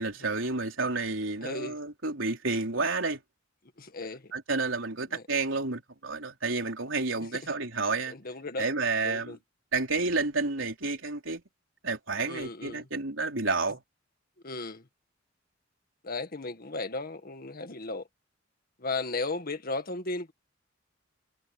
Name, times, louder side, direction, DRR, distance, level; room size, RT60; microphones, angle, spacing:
voice 1, 0.0-3.2 4.3-8.1 8.6-9.4 9.7-11.4 11.8-13.8, right 3 dB, 75° right, 4.2 m, -30 dB
voice 2, 1.4-1.8 3.8-4.3 5.1-5.2 8.1-8.7 9.0-9.4 12.3-12.9 14.4-14.9 16.0-18.1 18.8-20.3, left 3 dB, 50° left, 1.9 m, -35 dB
head